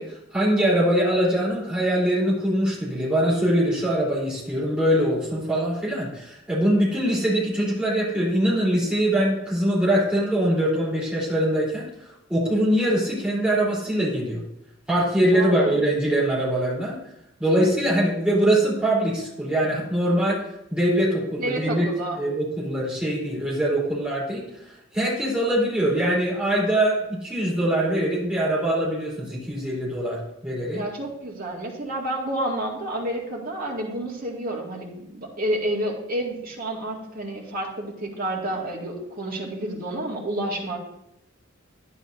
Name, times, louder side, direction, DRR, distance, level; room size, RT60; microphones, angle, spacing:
voice 1, 0.0-14.4 14.9-16.9 17.4-20.4 20.7-21.8 22.2-30.8, right 1 dB, 5° right, -7 dB, 3.8 m, -23 dB
voice 2, 15.3-15.7 21.4-22.2 30.7-40.8, right 1 dB, 50° right, -2 dB, 2.2 m, -29 dB
11.5 x 10.0 x 2.7 m, 0.84 s
head